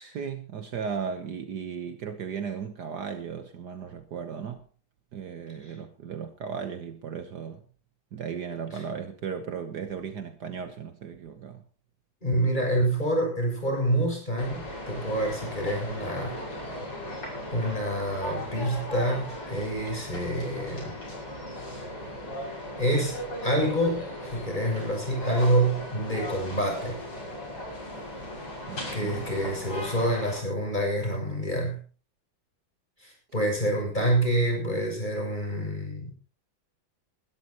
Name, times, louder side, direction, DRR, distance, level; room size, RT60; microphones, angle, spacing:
voice 1, 0.0-4.6 5.1-7.6 8.1-11.6 28.7-29.4, right 6 dB, 60° right, 1.6 m, -36 dB
voice 2, 12.2-16.4 17.5-21.0 22.8-27.0 28.9-31.8 33.0-36.2, right 1 dB, 20° left, 7.1 m, -27 dB
sound 1, 14.4-30.4, left 1 dB, 80° left, 7.0 m, -37 dB
21.5 x 13.0 x 3.0 m
omnidirectional pair, 2.1 m